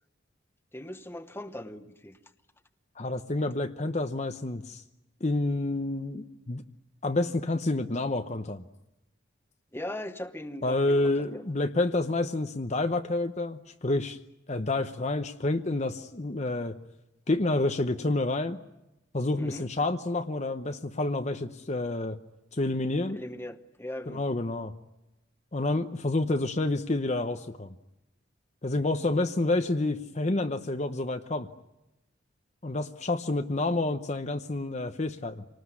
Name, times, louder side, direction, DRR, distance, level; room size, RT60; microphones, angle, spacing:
voice 1, 0.7-2.2 9.7-11.4 19.4-19.7 23.1-24.3, left 1 dB, 10° left, 9 dB, 1.0 m, -39 dB
voice 2, 3.0-4.8 5.2-6.6 7.0-8.6 10.6-14.2 14.5-16.8 17.3-18.6 19.1-22.2 22.5-23.2 24.1-24.7 25.5-27.7 28.6-31.5 32.6-35.4, left 2 dB, 35° left, 7 dB, 0.8 m, -29 dB
26.5 x 19.5 x 9.7 m, 0.94 s
head